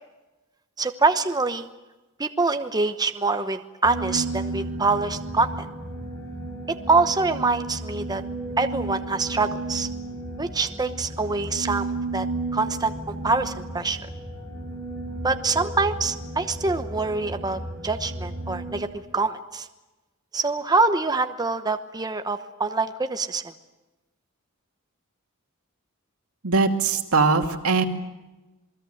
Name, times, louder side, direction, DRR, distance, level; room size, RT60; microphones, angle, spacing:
voice 1, 0.8-1.7 2.2-5.7 6.7-8.2 8.6-9.9 10.4-12.3 12.5-14.0 15.2-19.7 20.3-23.4, right 3 dB, 20° right, 8 dB, 1.0 m, -25 dB
sound 1, 3.8-18.8, right 2 dB, 10° left, 6.5 m, -33 dB
voice 2, 26.4-27.8, right 4 dB, 85° right, 5 dB, 2.4 m, -21 dB
28.0 x 21.0 x 7.9 m, 1.1 s
head